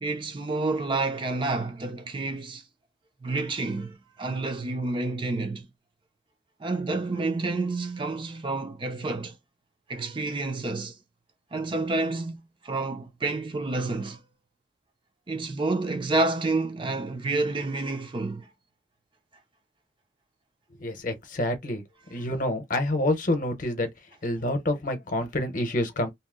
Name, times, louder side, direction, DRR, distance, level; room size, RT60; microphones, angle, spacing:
voice 1, 0.0-2.6 3.2-5.7 6.6-9.4 9.9-11.0 11.5-14.2 15.3-18.5, right 3 dB, 25° right, 0.4 m, -29 dB
voice 2, 20.8-21.8 22.1-23.9 24.2-26.1, left 1 dB, 45° left, 0.8 m, -27 dB
2.7 x 2.0 x 3.6 m
head